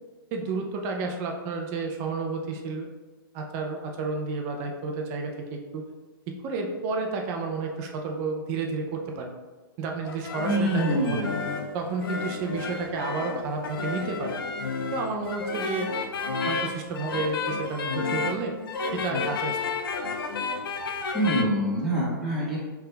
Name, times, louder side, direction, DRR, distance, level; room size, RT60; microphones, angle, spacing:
voice 1, 0.3-2.9 3.3-5.8 6.3-9.3 9.8-11.3 11.7-14.4 14.9-15.9 16.5-18.5 18.9-19.6, right 4 dB, 20° right, 2 dB, 0.4 m, -31 dB
sound 1, 10.1-21.4, left 4 dB, 75° left, 0.5 m, -31 dB
voice 2, 10.4-11.5 21.1-22.6, right 1 dB, 5° right, -10 dB, 1.2 m, -25 dB
5.7 x 3.3 x 2.2 m, 1.3 s
hypercardioid pair, 165°, 12 cm